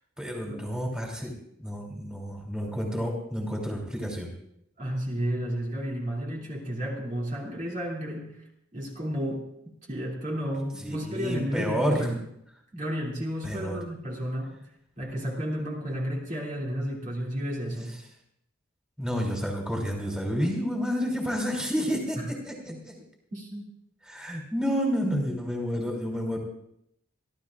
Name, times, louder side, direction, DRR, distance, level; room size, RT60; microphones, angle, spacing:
voice 1, 0.2-1.3 1.6-4.3 10.8-12.1 13.4-13.8 19.0-22.2 22.4-22.5 22.9-23.0 24.1-26.4, equal, 5° right, -1 dB, 3.0 m, -29 dB
voice 2, 4.8-8.4 8.7-9.5 9.9-12.2 12.7-14.6 15.0-18.0 22.2-22.3 22.7-22.8 23.3-23.7, equal, 40° right, -3 dB, 2.8 m, -32 dB
29.5 x 12.5 x 2.5 m, 0.75 s
head